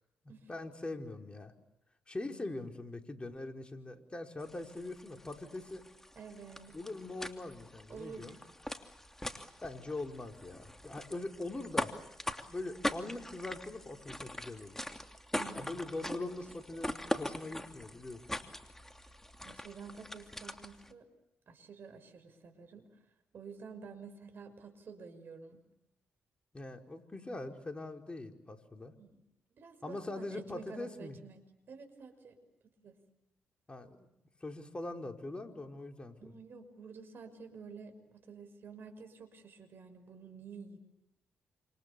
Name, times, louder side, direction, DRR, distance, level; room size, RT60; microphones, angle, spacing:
voice 1, 0.5-1.5 2.1-5.8 6.7-8.4 9.6-11.9 12.4-14.8 15.6-18.4 26.5-28.9 29.8-31.2 33.7-34.0 34.4-36.3, left 2 dB, 25° left, 4 dB, 5.0 m, -42 dB
sound 1, 4.4-20.9, left 1 dB, 10° left, 2.9 m, -42 dB
voice 2, 6.1-6.7 7.9-8.4 15.3-16.4 16.7-17.1 17.9-18.0 19.0-19.1 19.4-21.1 21.5-23.0 23.3-25.6 28.9-29.2 29.5-31.4 31.7-32.9 36.2-40.8, right 5 dB, 60° right, 7 dB, 6.1 m, -50 dB
28.5 x 27.5 x 7.1 m, 0.87 s
supercardioid pair, 50°, 4 cm